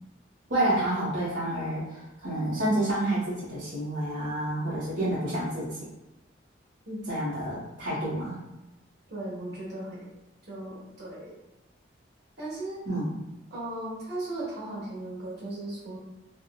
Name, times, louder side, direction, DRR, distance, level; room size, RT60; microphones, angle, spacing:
voice 1, 0.5-5.8 7.1-8.4 12.9-13.1, right 1 dB, 85° right, -11 dB, 1.0 m, -29 dB
voice 2, 9.1-10.1 10.5-11.4 12.4-12.8 13.5-16.0, right 1 dB, 60° right, -7 dB, 1.3 m, -37 dB
3.4 x 2.0 x 2.2 m, 1.0 s
head